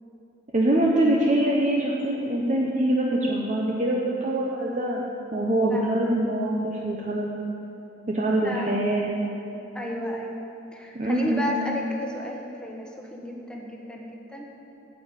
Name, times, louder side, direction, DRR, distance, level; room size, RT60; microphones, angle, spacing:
voice 1, 0.5-5.0 5.3-7.3 8.1-9.1 10.9-11.5, right 1 dB, 40° right, -3 dB, 0.9 m, -24 dB
voice 2, 8.4-8.7 9.7-10.3 10.7-14.5, equal, 5° left, -1 dB, 1.2 m, -33 dB
8.6 x 7.6 x 8.8 m, 3.0 s
head